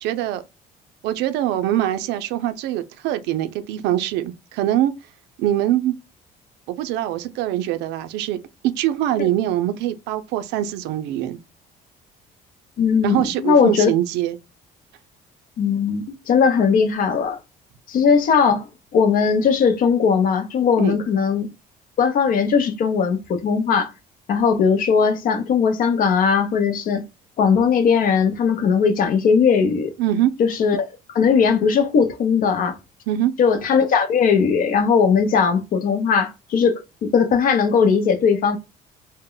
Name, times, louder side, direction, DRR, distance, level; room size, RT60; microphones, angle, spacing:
voice 1, 0.0-0.4 1.0-4.9 5.4-5.9 6.7-8.4 8.6-11.4 13.0-14.4 20.8-21.0 30.0-30.3 33.1-33.3, right 13 dB, 90° right, 0.4 m, -23 dB
voice 2, 12.8-13.9 15.6-17.4 17.9-21.5 22.0-23.9 24.3-27.0 27.4-29.9 30.4-30.9 31.1-32.8 33.4-38.6, left 6 dB, 55° left, 0.6 m, -18 dB
2.1 x 2.0 x 3.7 m
cardioid pair, 110°, 17 cm